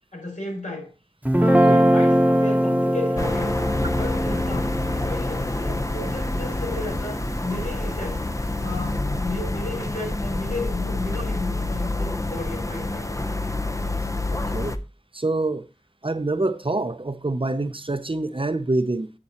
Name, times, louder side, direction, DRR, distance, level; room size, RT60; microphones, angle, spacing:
voice 1, 0.1-0.9 1.4-3.6 3.9-8.2 8.6-13.2, left 2 dB, 80° left, 4.9 m, -34 dB
Guitar, 1.2-7.6, equal, 10° right, 1.0 m, -22 dB
sound 1, 3.2-14.8, left 2 dB, 25° left, 0.7 m, -27 dB
voice 2, 14.3-14.8 15.1-15.7 16.0-19.1, right 2 dB, 45° right, 0.7 m, -26 dB
9.7 x 7.6 x 2.9 m
wide cardioid pair, 40°, 13 cm